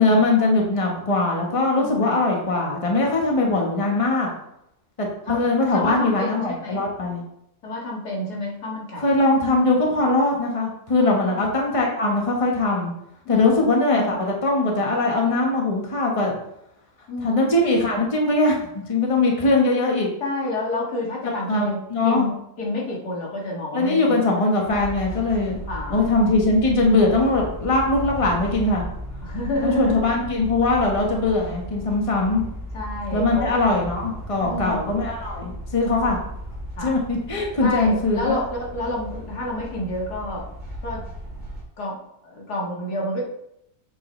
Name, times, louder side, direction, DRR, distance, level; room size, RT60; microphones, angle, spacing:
voice 1, 0.0-4.3 5.0-7.2 9.0-12.9 13.3-16.3 17.2-18.6 18.9-20.1 21.2-22.3 23.7-25.6 25.9-28.8 29.6-32.5 33.1-36.2 36.8-38.4, left 2 dB, 20° left, -1 dB, 1.4 m, -21 dB
voice 2, 1.5-2.1 5.3-5.4 5.7-6.8 7.6-9.2 11.0-11.5 13.3-13.6 17.1-17.5 20.2-24.3 25.7-26.1 29.2-30.1 32.7-33.5 34.4-34.8 36.8-37.0 37.6-40.5 40.8-41.0 41.8-42.0 42.2-43.2, left 1 dB, 85° left, -3 dB, 2.4 m, -29 dB
sound 1, 24.6-41.6, equal, 5° left, 3.3 m, -35 dB
7.9 x 7.1 x 3.3 m, 0.79 s
omnidirectional pair, 1.6 m